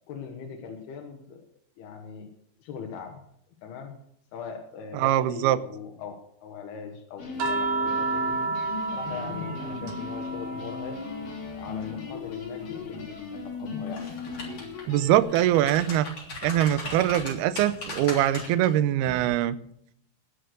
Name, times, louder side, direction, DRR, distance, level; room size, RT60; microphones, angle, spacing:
voice 1, 0.1-1.4 1.8-2.3 2.6-3.2 3.6-3.9 4.3-8.4 8.9-11.0 11.5-14.2, left 6 dB, 75° left, 2 dB, 3.3 m, -40 dB
voice 2, 4.9-5.6 14.9-16.1 16.4-19.6, right 12 dB, 80° right, 14 dB, 2.6 m, -23 dB
sound 1, 7.2-15.2, left 4 dB, 55° left, 4.5 m, -37 dB
sound 2, 7.4-11.9 12.2-13.9 15.4-15.6, right 3 dB, 65° right, 3.3 m, -33 dB
sound 3, 13.9-14.8 15.2-18.7 19.1-19.3, left 2 dB, 35° left, 3.9 m, -38 dB
19.5 x 6.6 x 6.5 m, 0.71 s
omnidirectional pair, 4.7 m